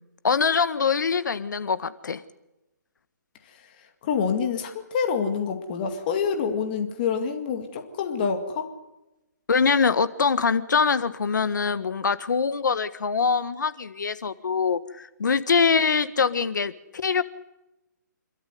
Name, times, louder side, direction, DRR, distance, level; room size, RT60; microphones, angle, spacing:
voice 1, 0.2-2.2 9.5-17.2, left 5 dB, 70° left, 14 dB, 1.5 m, -23 dB
voice 2, 4.0-8.7, left 6 dB, 30° left, 5 dB, 2.2 m, -27 dB
27.5 x 13.0 x 9.4 m, 0.96 s
hypercardioid pair, 165°, 10 cm